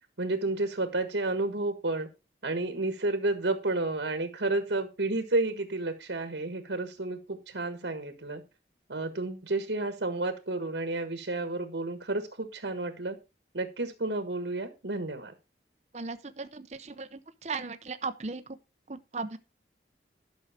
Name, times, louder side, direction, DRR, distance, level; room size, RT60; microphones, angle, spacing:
voice 1, 0.2-2.1 2.4-8.4 8.9-13.2 13.5-15.3, right 2 dB, 85° right, 1.5 m, -31 dB
voice 2, 15.9-18.6 18.9-19.4, right 4 dB, 40° right, 0.7 m, -37 dB
12.0 x 6.3 x 4.9 m
head